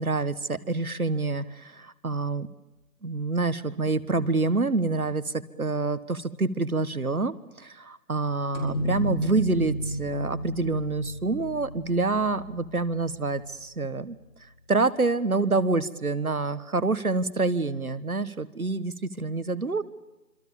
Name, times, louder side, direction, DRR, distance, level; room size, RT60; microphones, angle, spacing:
voice 1, 0.0-2.5 3.0-14.2 14.7-19.8, right 3 dB, 65° right, 15 dB, 1.6 m, -27 dB
sound 1, 8.5-14.1, equal, 45° left, 5.8 m, -33 dB
26.5 x 26.0 x 7.2 m, 1.0 s
figure-of-eight pair, 175°, 47 cm